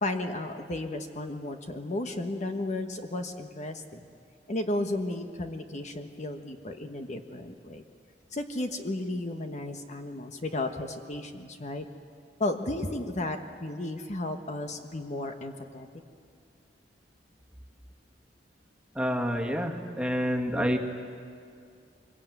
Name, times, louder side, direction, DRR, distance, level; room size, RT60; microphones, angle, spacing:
voice 1, 0.0-4.0 4.5-7.8 8.3-11.9 12.4-15.9, left 2 dB, 40° left, 6 dB, 1.3 m, -33 dB
voice 2, 19.0-20.8, equal, 5° right, 1 dB, 2.0 m, -28 dB
25.0 x 22.5 x 9.3 m, 2.3 s
head